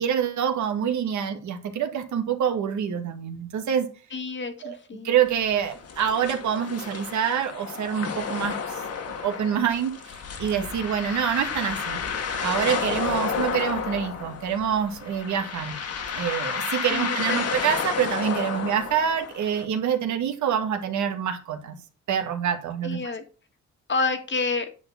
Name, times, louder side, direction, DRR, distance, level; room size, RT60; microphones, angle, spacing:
voice 1, 0.0-3.9 4.6-4.8 5.0-8.6 9.0-12.0 12.4-15.8 16.2-21.8 22.1-23.1, right 8 dB, 70° right, 6 dB, 1.9 m, -26 dB
voice 2, 4.1-5.1 16.9-17.4 22.8-23.2 23.9-24.7, left 4 dB, 40° left, 7 dB, 1.9 m, -29 dB
sound 1, 5.3-19.7, left 6 dB, 55° left, 2.0 m, -31 dB
9.7 x 4.3 x 7.2 m, 0.36 s
cardioid pair, 90°, 30 cm